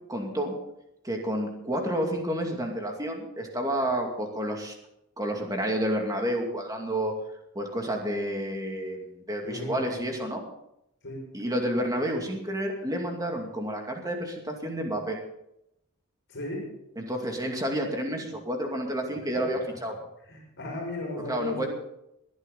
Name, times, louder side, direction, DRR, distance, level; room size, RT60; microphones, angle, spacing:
voice 1, 0.1-0.5 1.0-4.7 5.2-7.1 7.5-10.4 11.3-15.2 17.0-19.9 21.3-21.7, right 1 dB, 15° right, 2 dB, 2.5 m, -30 dB
voice 2, 9.4-10.0 11.0-11.2 16.3-16.7 20.3-21.7, left 2 dB, 55° left, -2 dB, 6.2 m, -35 dB
21.0 x 11.0 x 4.1 m, 0.82 s
head